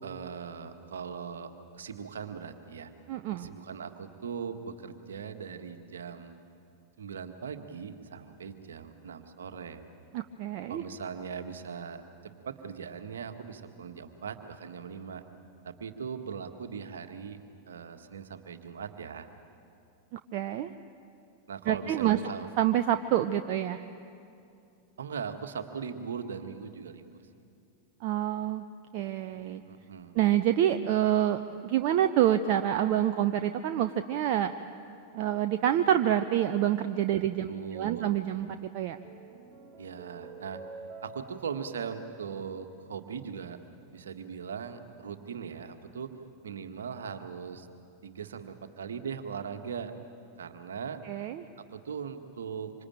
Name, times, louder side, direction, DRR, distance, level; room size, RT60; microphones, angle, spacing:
voice 1, 0.0-2.9 3.4-6.4 7.0-9.9 10.7-15.2 15.6-17.4 17.7-19.3 21.5-22.5 25.0-27.2 29.6-30.2 37.5-38.2 39.8-40.6 41.0-43.6 43.9-46.1 46.4-47.7 48.0-49.9 50.4-51.0 51.6-52.7, right 6 dB, 65° right, 7 dB, 1.8 m, -40 dB
voice 2, 3.1-3.5 10.1-10.8 20.3-20.7 21.7-22.2 22.6-23.8 28.0-28.6 28.9-29.6 30.2-34.5 35.1-38.5 38.7-39.0 51.0-51.4, right 11 dB, 45° right, 8 dB, 0.8 m, -27 dB
sound 1, 38.8-43.4, right 4 dB, 25° right, 4.8 m, -49 dB
26.0 x 26.0 x 9.0 m, 2.6 s
figure-of-eight pair, 90°, 0 cm